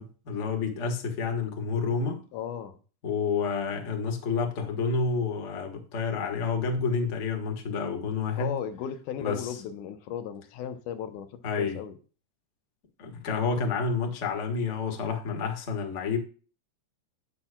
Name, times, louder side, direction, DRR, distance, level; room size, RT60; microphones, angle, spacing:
voice 1, 0.0-2.2 3.0-8.6 9.2-9.5 11.4-11.8 13.0-16.2, left 5 dB, 35° left, 1.1 m, -29 dB
voice 2, 2.3-2.8 8.4-12.0, left 9 dB, 80° left, 2.2 m, -36 dB
10.0 x 8.4 x 2.3 m
omnidirectional pair, 3.7 m